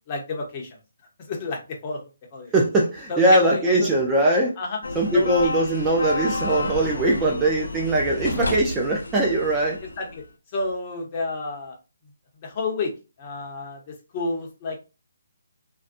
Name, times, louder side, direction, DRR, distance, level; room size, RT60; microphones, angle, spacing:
voice 1, 0.1-0.7 1.2-2.5 3.1-3.4 3.8-3.9 4.6-4.8 5.1-5.5 10.0-10.2 10.5-11.7 12.4-12.9 13.2-14.8, left 3 dB, 30° left, 0.8 m, -30 dB
voice 2, 2.5-4.5 4.9-9.8, right 1 dB, 10° right, 0.4 m, -21 dB
sound 1, 4.8-10.2, left 2 dB, 75° left, 0.5 m, -30 dB
2.5 x 2.2 x 2.5 m
hypercardioid pair, 160°, 0 cm